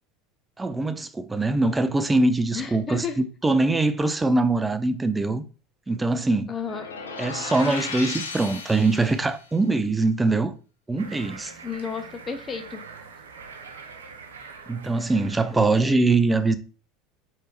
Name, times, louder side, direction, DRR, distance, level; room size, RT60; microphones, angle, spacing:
voice 1, 0.6-5.4 5.9-6.6 7.2-10.5 10.9-11.5 14.7-16.6, right 2 dB, 15° right, 0.5 m, -23 dB
voice 2, 2.5-3.2 6.5-6.9 11.6-12.8 15.5-15.9, left 6 dB, 30° left, 0.7 m, -32 dB
sound 1, 6.6-9.4, left 4 dB, 90° left, 0.7 m, -35 dB
sound 2, 11.0-16.0, right 5 dB, 85° right, 0.6 m, -44 dB
4.6 x 3.4 x 3.0 m
hypercardioid pair, 80°, 0 cm